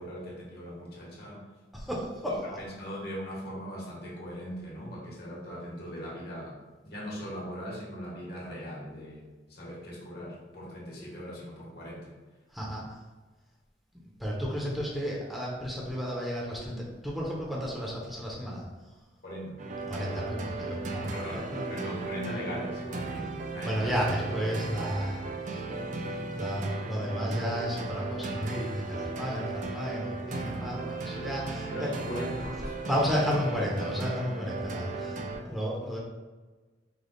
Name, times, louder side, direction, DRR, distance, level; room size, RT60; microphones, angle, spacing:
voice 1, 0.0-1.5 2.3-9.2 9.5-12.1 19.2-19.7 21.1-24.0 25.0-25.2 31.7-33.0, equal, 60° left, -4 dB, 1.4 m, -40 dB
voice 2, 1.7-2.6 12.5-13.0 14.2-18.6 19.9-21.6 23.6-25.2 25.5-25.6 26.4-31.9 32.9-36.0, equal, ahead, -5 dB, 0.8 m, -33 dB
sound 1, 19.6-35.4, right 3 dB, 45° right, 0.4 m, -36 dB
5.1 x 2.4 x 3.8 m, 1.3 s
head